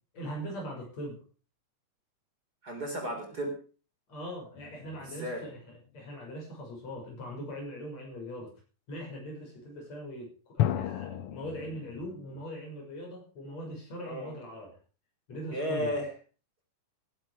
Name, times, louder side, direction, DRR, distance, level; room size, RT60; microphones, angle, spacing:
voice 1, 0.1-1.2 4.1-8.5 8.9-14.7 15.3-15.9, equal, 55° left, 1 dB, 7.4 m, -41 dB
voice 2, 2.6-3.5 5.0-5.5 14.0-14.4 15.5-16.1, equal, 30° right, 3 dB, 4.2 m, -34 dB
sound 1, 4.6-5.9 10.6-12.5, left 11 dB, 80° left, 1.2 m, -34 dB
17.5 x 12.0 x 4.8 m, 0.37 s
omnidirectional pair, 3.6 m